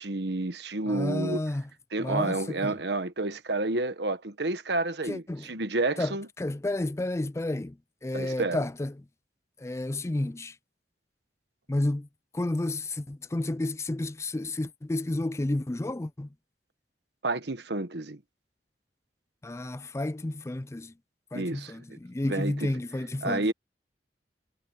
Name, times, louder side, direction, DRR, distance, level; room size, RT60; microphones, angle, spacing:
voice 1, 0.0-1.4 1.9-6.3 8.1-8.7 17.2-18.2 21.3-21.7 22.3-22.7 23.2-23.5, right 2 dB, 75° right, 1.4 m, -30 dB
voice 2, 0.9-1.6 2.0-2.7 5.1-5.5 6.0-7.7 8.0-8.9 9.6-10.5 11.7-12.1 12.3-16.3 19.4-20.9 21.3-23.5, left 1 dB, 15° left, 0.4 m, -31 dB
head